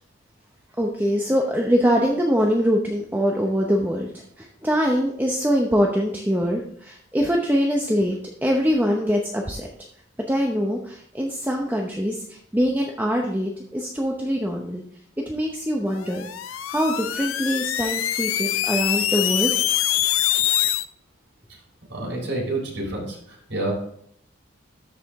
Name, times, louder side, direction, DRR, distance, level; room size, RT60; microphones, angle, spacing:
voice 1, 0.8-4.1 4.4-8.2 8.4-9.7 10.3-12.2 12.5-14.8 15.3-16.3 16.7-19.5, equal, 10° right, 0 dB, 0.7 m, -23 dB
sound 1, 16.0-20.8, left 12 dB, 85° left, 0.5 m, -24 dB
voice 2, 21.9-23.7, right 2 dB, 65° right, -3 dB, 4.1 m, -28 dB
13.0 x 5.0 x 3.6 m, 0.67 s
head